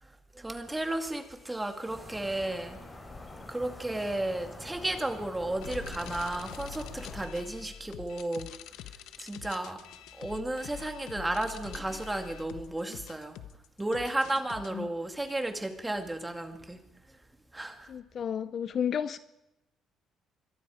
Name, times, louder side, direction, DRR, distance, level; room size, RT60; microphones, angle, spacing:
voice 1, 0.0-2.8 3.5-8.5 9.2-9.8 10.2-13.4 13.8-16.8 17.1-17.2 17.5-17.9, right 1 dB, 10° right, 5 dB, 2.3 m, -33 dB
sound 1, 1.9-7.3, left 2 dB, 20° left, 4.8 m, -45 dB
sound 2, 5.6-14.7, left 9 dB, 85° left, 1.2 m, -45 dB
voice 2, 17.9-19.2, left 8 dB, 45° left, 14 dB, 0.6 m, -32 dB
25.0 x 22.5 x 5.0 m, 0.93 s
cardioid pair, 135°, 0 cm